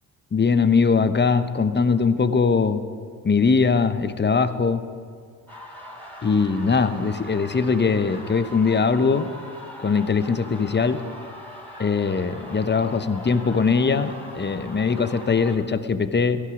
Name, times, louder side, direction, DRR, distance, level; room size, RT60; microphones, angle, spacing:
voice 1, 0.3-2.8 3.2-4.8 6.2-9.3 9.8-11.0 11.8-16.4, left 5 dB, 20° left, 11 dB, 0.9 m, -21 dB
sound 1, 5.5-15.5, left 1 dB, 5° left, 4.1 m, -41 dB
16.0 x 12.5 x 5.0 m, 2.1 s
hypercardioid pair, 50°, 48 cm